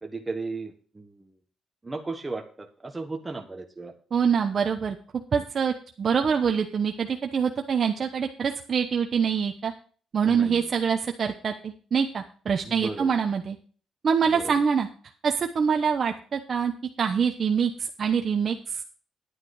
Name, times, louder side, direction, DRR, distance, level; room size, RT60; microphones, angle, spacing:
voice 1, 0.0-1.3 1.8-3.9 5.3-5.4 10.2-10.7 12.6-13.2 14.3-14.5, right 3 dB, 20° right, 3 dB, 1.3 m, -35 dB
voice 2, 4.1-5.0 5.3-9.7 10.1-13.6 14.0-14.9 15.2-16.7 17.0-18.8, right 6 dB, 50° right, 4 dB, 1.0 m, -25 dB
10.0 x 8.9 x 4.8 m, 0.42 s
cardioid pair, 90°, 0 cm